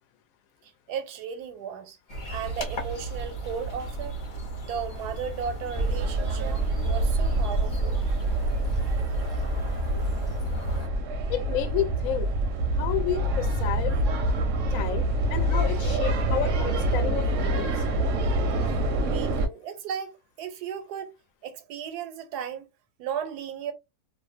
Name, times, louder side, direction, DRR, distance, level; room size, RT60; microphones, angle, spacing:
voice 1, 0.9-2.0 2.3-4.2 4.6-8.0 19.0-21.1 21.4-22.7 23.0-23.7, right 7 dB, 90° right, 1.2 m, -35 dB
sound 1, 2.1-10.9, right 1 dB, 45° left, 0.6 m, -34 dB
sound 2, 5.7-19.5, right 1 dB, 65° right, 0.8 m, -26 dB
voice 2, 11.3-12.3 12.7-13.9 14.7-15.0 15.3-17.9, left 10 dB, 70° left, 0.9 m, -30 dB
2.6 x 2.1 x 2.4 m
omnidirectional pair, 1.7 m